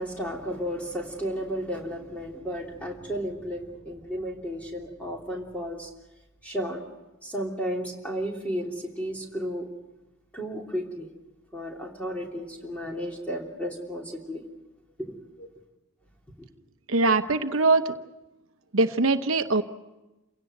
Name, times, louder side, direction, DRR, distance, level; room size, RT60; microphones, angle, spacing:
voice 1, 0.0-5.9 6.4-6.8 7.2-9.7 10.3-11.1 11.5-14.4 15.0-15.5, equal, 5° left, -1 dB, 3.2 m, -33 dB
voice 2, 16.9-17.9 18.7-19.6, right 3 dB, 70° right, 8 dB, 0.9 m, -22 dB
28.5 x 17.0 x 7.9 m, 1.0 s
head